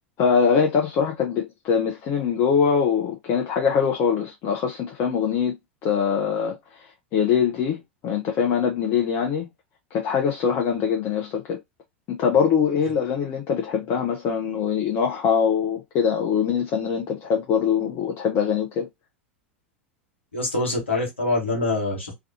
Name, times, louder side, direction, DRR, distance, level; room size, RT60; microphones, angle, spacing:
voice 1, 0.2-5.6 5.8-9.5 9.9-11.6 12.1-18.9, left 7 dB, 40° left, 0.6 m, -23 dB
voice 2, 20.3-22.1, left 2 dB, 85° left, 1.1 m, -25 dB
2.3 x 2.3 x 2.7 m
figure-of-eight pair, 85°, 6 cm